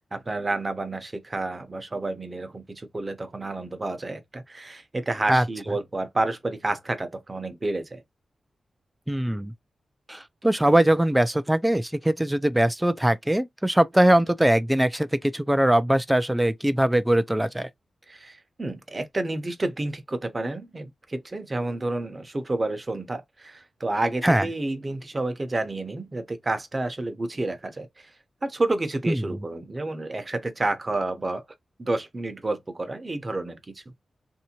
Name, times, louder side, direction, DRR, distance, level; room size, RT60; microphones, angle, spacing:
voice 1, 0.0-8.0 18.1-28.1 28.4-31.4 31.8-33.8, right 2 dB, 30° right, 0.8 m, -30 dB
voice 2, 9.1-9.5 10.1-17.7 24.2-24.4 29.1-29.2, right 1 dB, 10° right, 0.4 m, -21 dB
3.3 x 2.7 x 2.9 m
wide cardioid pair, 80°, 0 cm